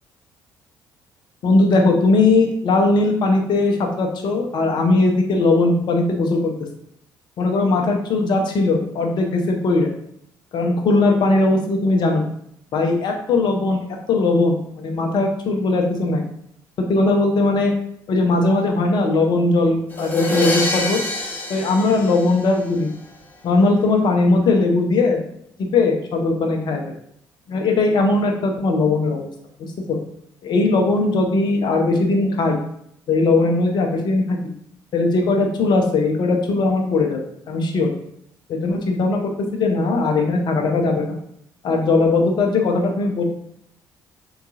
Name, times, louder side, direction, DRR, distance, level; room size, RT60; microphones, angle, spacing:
voice 1, 1.4-6.5 7.4-9.9 10.5-12.3 12.7-13.8 14.1-16.2 16.9-17.7 18.1-21.0 21.5-22.9 23.4-25.2 25.6-26.8 27.5-29.3 29.6-30.0 30.4-32.6 33.1-34.4 34.9-37.9 38.5-41.2 41.6-43.2, left 3 dB, 45° left, 3 dB, 0.6 m, -19 dB
sound 1, 19.9-22.9, left 2 dB, 20° left, 0.8 m, -26 dB
3.7 x 2.3 x 2.7 m, 0.71 s
figure-of-eight pair, 45°, 10 cm